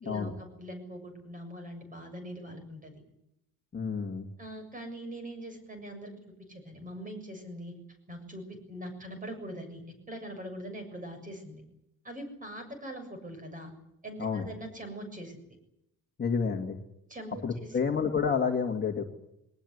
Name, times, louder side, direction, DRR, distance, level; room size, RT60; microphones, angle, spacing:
voice 1, 0.0-2.9 4.4-6.1 6.5-7.7 8.1-9.8 10.1-11.6 12.0-13.7 14.0-15.4 17.1-17.8, equal, 20° right, 6 dB, 7.1 m, -42 dB
voice 2, 3.7-4.3 14.2-14.5 16.2-16.8 17.4-19.1, left 6 dB, 30° left, 2 dB, 2.4 m, -29 dB
22.5 x 19.0 x 9.8 m, 0.81 s
cardioid pair, 155°, 36 cm